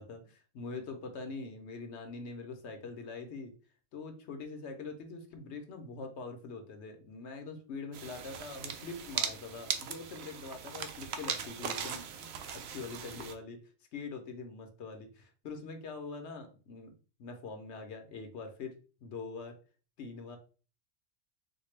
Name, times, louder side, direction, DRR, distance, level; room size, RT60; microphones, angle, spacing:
voice 1, 0.0-3.5 3.9-12.3 12.7-13.6 13.9-16.9 17.2-18.7 19.0-19.6 20.0-20.4, left 4 dB, 75° left, 5 dB, 1.0 m, -43 dB
sound 1, 7.9-13.3, right 7 dB, 70° right, 0.8 m, -39 dB
4.3 x 2.2 x 3.2 m, 0.37 s
omnidirectional pair, 1.2 m